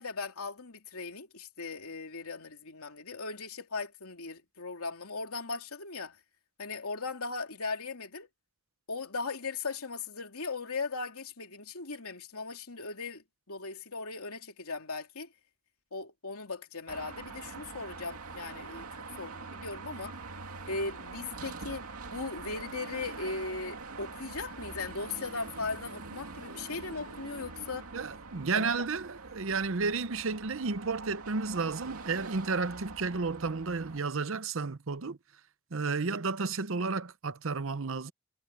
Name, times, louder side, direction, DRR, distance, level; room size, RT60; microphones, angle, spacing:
voice 1, 0.0-6.2 6.6-8.3 8.9-15.3 15.9-18.9 19.2-20.2 20.7-27.9 28.5-28.9, left 3 dB, 80° left, 2.9 m, -38 dB
Car passing by / Traffic noise roadway noise / Engine, 16.9-34.0, right 3 dB, 90° right, 2.5 m, -44 dB
voice 2, 27.9-35.2 35.7-38.1, right 4 dB, 60° right, 0.7 m, -32 dB
head